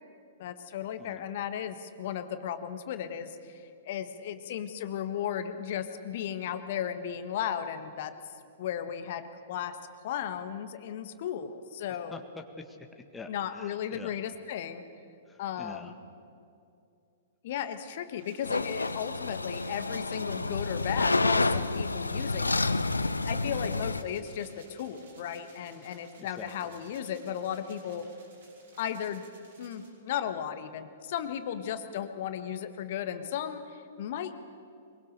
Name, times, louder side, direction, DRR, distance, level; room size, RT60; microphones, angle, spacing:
voice 1, 0.4-8.2 8.6-9.8 10.0-12.2 13.3-14.8 15.4-16.0 17.4-22.7 23.2-28.1 28.8-29.2 29.6-34.4, left 9 dB, 50° left, 10 dB, 1.5 m, -35 dB
voice 2, 11.9-14.2 15.3-15.9 25.8-26.8, left 3 dB, 10° left, 5 dB, 1.6 m, -47 dB
sound 1, 18.2-29.9, right 3 dB, 55° right, 5.5 m, -58 dB
sound 2, 18.4-24.0, left 3 dB, 80° left, 0.7 m, -29 dB
23.5 x 22.5 x 6.7 m, 2.5 s
figure-of-eight pair, 110°, 0 cm